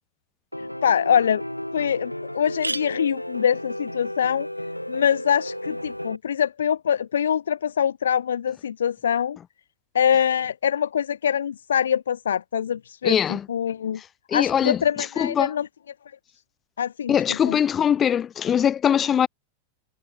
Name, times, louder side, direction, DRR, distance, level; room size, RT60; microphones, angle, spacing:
Piano, 0.5-6.2, left 1 dB, 90° left, 3.2 m, -33 dB
voice 1, 0.8-1.4 1.7-4.5 4.9-9.4 9.9-14.0 14.3-15.7 16.8-17.1 17.5-17.6, left 8 dB, 65° left, 0.5 m, -24 dB
sound 1, 1.0-1.1 1.6-1.7 1.9-2.0 2.3-6.1, right 2 dB, 85° right, 7.6 m, -39 dB
voice 2, 13.0-13.5 14.3-14.8 15.2-15.5 17.1-19.3, left 9 dB, 25° left, 2.6 m, -21 dB
figure-of-eight pair, 90°, 0 cm